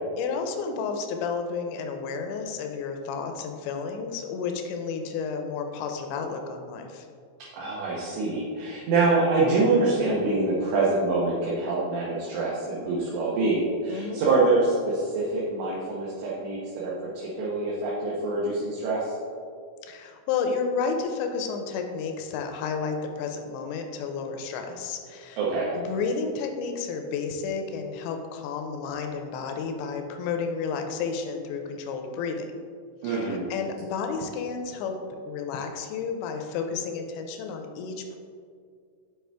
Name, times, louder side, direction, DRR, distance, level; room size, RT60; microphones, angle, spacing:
voice 1, 0.2-7.1 13.9-14.2 19.8-25.4 25.7-32.5 33.0-35.0 35.3-38.2, left 5 dB, 90° left, 5 dB, 2.9 m, -31 dB
voice 2, 7.5-19.1 25.4-25.7 33.0-33.5, right 3 dB, 80° right, -6 dB, 3.1 m, -25 dB
7.8 x 4.9 x 3.4 m, 2.1 s
omnidirectional pair, 5.1 m